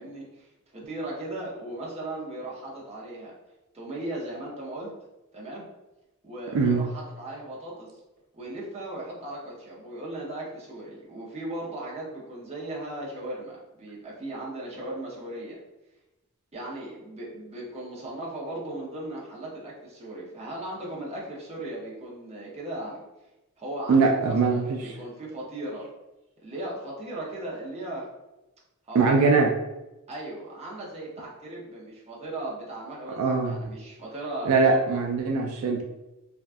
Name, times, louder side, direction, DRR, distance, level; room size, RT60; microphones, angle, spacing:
voice 1, 0.0-3.3 3.7-4.9 5.3-5.7 6.2-7.9 8.3-15.6 16.5-23.0 23.6-25.9 26.4-28.1 28.9-29.3 30.1-34.8, right 1 dB, 30° right, -5 dB, 0.8 m, -37 dB
voice 2, 6.5-6.8 23.9-24.8 28.9-29.5 33.2-33.6 34.5-35.8, right 4 dB, 75° right, 2 dB, 0.4 m, -22 dB
3.4 x 2.3 x 2.5 m, 1.0 s
head